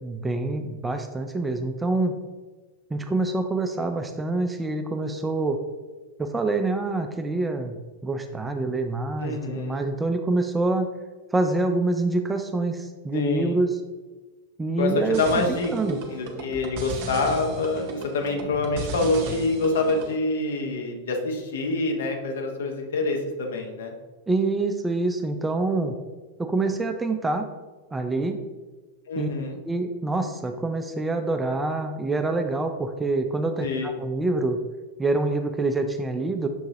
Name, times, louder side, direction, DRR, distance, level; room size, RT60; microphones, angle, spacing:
voice 1, 0.0-2.1 2.9-5.6 6.2-10.9 11.3-13.7 14.6-15.2 15.5-16.0 24.3-26.0 26.4-27.4 27.9-28.4 29.2-29.3 29.6-34.6 35.0-36.5, right 2 dB, 10° right, 6 dB, 0.3 m, -26 dB
voice 2, 9.2-9.8 13.1-13.6 14.8-15.7 16.1-23.9 29.1-29.6 33.6-33.9, left 3 dB, 60° left, 3 dB, 0.7 m, -26 dB
sound 1, 15.1-20.2, right 2 dB, 45° right, 0.6 m, -35 dB
6.2 x 2.8 x 2.7 m, 1.3 s
figure-of-eight pair, 90°, 0 cm